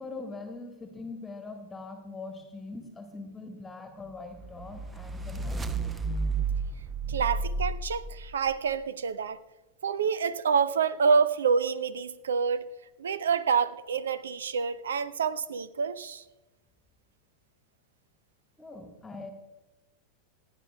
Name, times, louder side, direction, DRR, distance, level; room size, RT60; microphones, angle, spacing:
voice 1, 0.0-6.0 18.6-19.3, left 3 dB, 10° left, 1.4 m, -42 dB
sound 1, 4.3-8.6, right 3 dB, 15° right, 0.6 m, -32 dB
voice 2, 7.1-9.4 9.8-12.7 13.0-16.2, right 6 dB, 65° right, 0.5 m, -27 dB
27.0 x 9.9 x 2.2 m
figure-of-eight pair, 90°, 0 cm